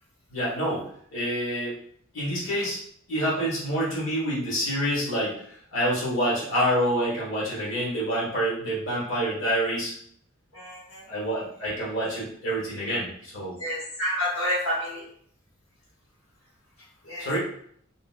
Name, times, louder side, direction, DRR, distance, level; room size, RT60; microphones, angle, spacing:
voice 1, 0.3-1.8 2.1-2.8 3.1-5.3 5.7-9.9 11.1-13.5 17.2-17.4, equal, 65° left, -7 dB, 1.3 m, -27 dB
voice 2, 10.5-11.0 13.6-15.0 17.1-17.4, left 1 dB, 85° left, -7 dB, 1.2 m, -29 dB
3.6 x 2.2 x 2.5 m, 0.63 s
head